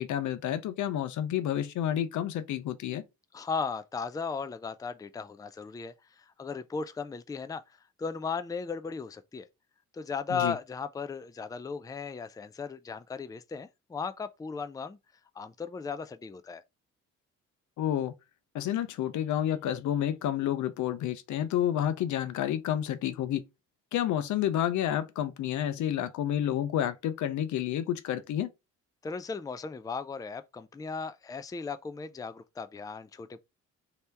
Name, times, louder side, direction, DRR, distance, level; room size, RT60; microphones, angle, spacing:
voice 1, 0.0-3.0 10.3-10.6 17.8-18.1 18.5-23.4 23.9-28.5, left 11 dB, 75° left, 0.7 m, -30 dB
voice 2, 3.3-9.5 9.9-15.0 15.4-16.6 29.0-33.4, left 5 dB, 10° left, 0.4 m, -36 dB
3.3 x 2.9 x 4.5 m
cardioid pair, 90°, 30 cm